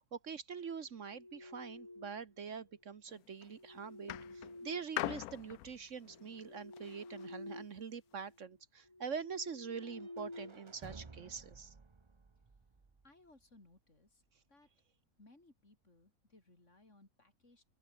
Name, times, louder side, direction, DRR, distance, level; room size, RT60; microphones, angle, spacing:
voice 1, 0.0-11.7, right 6 dB, 60° right, 1.5 m, -45 dB
sound 1, 0.9-2.4 3.4-5.5 6.0-7.8 8.1-8.4 8.9-11.2, left 2 dB, 20° left, 2.5 m, -51 dB
sound 2, 3.1-3.5 4.1-7.3 8.1-8.2, left 15 dB, 85° left, 1.1 m, -43 dB
sound 3, 9.8-13.7, right 4 dB, 25° right, 0.8 m, -56 dB
voice 2, 13.0-14.2 14.5-14.7 15.2-17.6, left 2 dB, 55° left, 5.1 m, -64 dB
open air
omnidirectional pair, 1.5 m